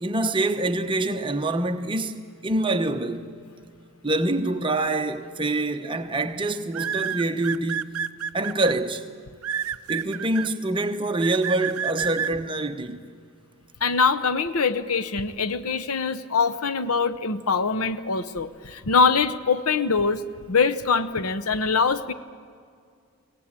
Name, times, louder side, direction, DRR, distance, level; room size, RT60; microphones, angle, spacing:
voice 1, 0.0-3.3 4.0-7.9 8.3-9.1 9.9-13.0, right 2 dB, 20° right, 0.9 m, -25 dB
sound 1, 5.2-5.5 6.7-8.7 9.4-10.5 11.2-12.3, right 8 dB, 70° right, 0.6 m, -29 dB
voice 2, 13.8-20.2 20.5-22.1, left 5 dB, 75° left, 0.8 m, -23 dB
23.0 x 18.5 x 8.7 m
head